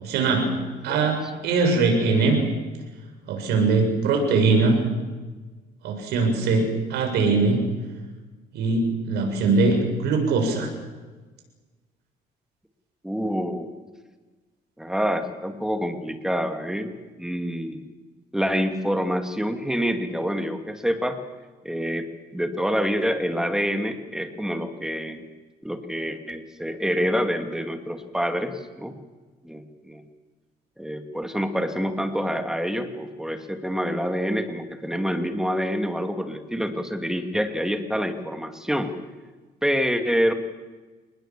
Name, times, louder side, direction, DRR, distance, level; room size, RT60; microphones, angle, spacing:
voice 1, 0.0-0.6 0.8-2.4 3.3-4.9 5.8-7.7 8.5-10.7, right 3 dB, 80° right, 3 dB, 7.3 m, -21 dB
voice 2, 0.6-1.2 13.0-13.7 14.8-16.9 17.2-17.8 18.3-21.2 21.6-22.1 22.3-25.2 25.6-29.0 29.4-30.1 30.8-38.9 39.6-40.3, equal, 5° right, 7 dB, 2.6 m, -27 dB
27.5 x 20.5 x 7.5 m, 1.3 s
cardioid pair, 110°, 17 cm